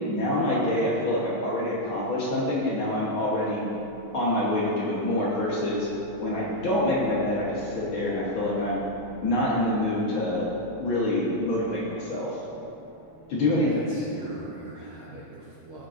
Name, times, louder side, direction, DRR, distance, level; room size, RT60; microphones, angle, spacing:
voice 1, 0.1-3.7 4.1-5.9 6.2-8.8 9.2-10.5 10.8-12.4 13.3-13.8, left 1 dB, 55° left, -6 dB, 1.6 m, -26 dB
sound 1, 2.2-14.6, right 2 dB, 70° left, 0.8 m, -48 dB
voice 2, 13.6-15.9, right 2 dB, 70° right, -5 dB, 1.2 m, -43 dB
15.0 x 6.0 x 2.6 m, 2.7 s
omnidirectional pair, 3.4 m